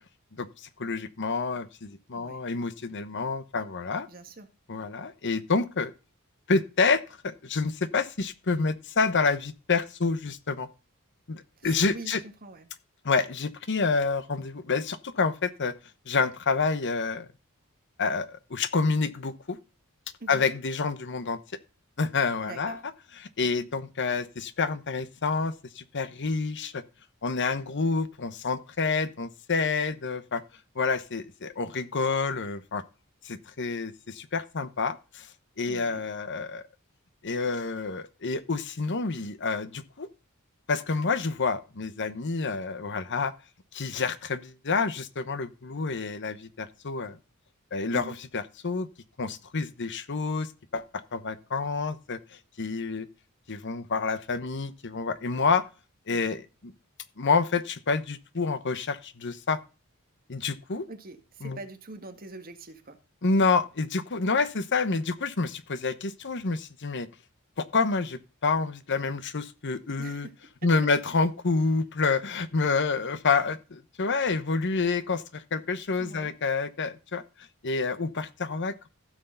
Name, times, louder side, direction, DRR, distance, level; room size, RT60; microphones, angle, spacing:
voice 1, 0.3-4.1 4.7-5.9 6.5-10.7 11.3-12.2 13.0-15.7 16.1-17.3 18.0-19.6 20.3-21.4 22.0-22.8 23.2-26.8 27.2-30.4 30.7-32.8 33.2-35.3 35.6-36.6 37.2-40.1 40.7-43.3 43.7-47.2 47.7-48.9 49.2-52.2 52.6-53.1 53.5-55.7 56.1-56.7 57.2-59.6 60.3-60.8 61.4-61.6 63.2-67.1 67.6-70.3 70.6-77.2 77.6-78.9, left 4 dB, 55° left, 1.0 m, -28 dB
voice 2, 4.1-4.5 11.6-12.7 20.2-20.5 22.4-22.8 35.7-36.0 47.9-48.2 56.1-56.4 60.9-63.0 70.0-70.3 76.0-76.3, right 3 dB, 45° right, 1.8 m, -44 dB
15.5 x 6.5 x 3.9 m
head